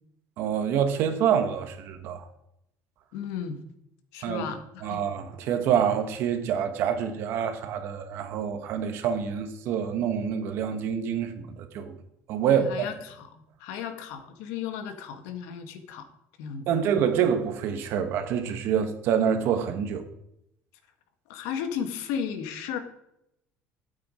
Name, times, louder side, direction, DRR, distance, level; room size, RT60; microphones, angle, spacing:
voice 1, 0.4-2.3 4.2-4.5 4.8-11.9 12.3-12.9 16.7-20.0, right 8 dB, 50° right, 1.5 m, -26 dB
voice 2, 3.1-3.6 4.1-5.0 12.5-16.1 16.4-16.7 21.3-22.8, left 8 dB, 75° left, 1.7 m, -35 dB
13.0 x 8.4 x 5.1 m
cardioid pair, 170°, 5 cm